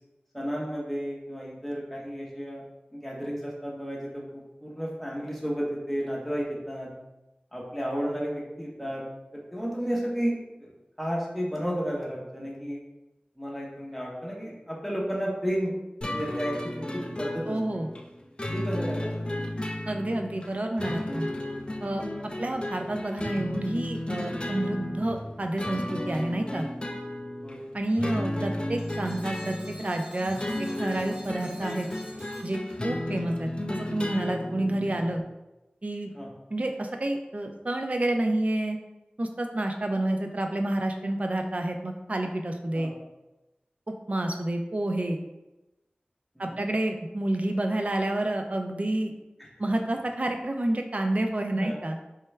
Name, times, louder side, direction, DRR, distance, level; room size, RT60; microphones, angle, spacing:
voice 1, 0.3-2.6 2.9-6.9 7.5-9.0 9.3-10.7 11.0-12.8 13.4-15.7 16.1-17.6 18.5-19.4 27.4-27.7 36.1-36.3 42.7-42.9 46.4-46.5 49.4-49.5 51.5-51.8, equal, ahead, -4 dB, 0.8 m, -32 dB
sound 1, 16.0-35.2, left 1 dB, 30° left, 0.3 m, -34 dB
voice 2, 17.5-17.9 19.9-21.3 21.8-22.0 22.4-26.7 27.7-30.4 30.8-31.9 32.4-35.2 35.8-36.1 36.5-38.8 39.2-42.9 44.1-45.2 46.4-49.1 49.6-52.0, right 1 dB, 45° right, 4 dB, 0.4 m, -29 dB
sound 2, 28.8-33.1, left 1 dB, 25° right, 0.9 m, -49 dB
3.2 x 2.2 x 3.1 m, 1.0 s
wide cardioid pair, 55°, 3 cm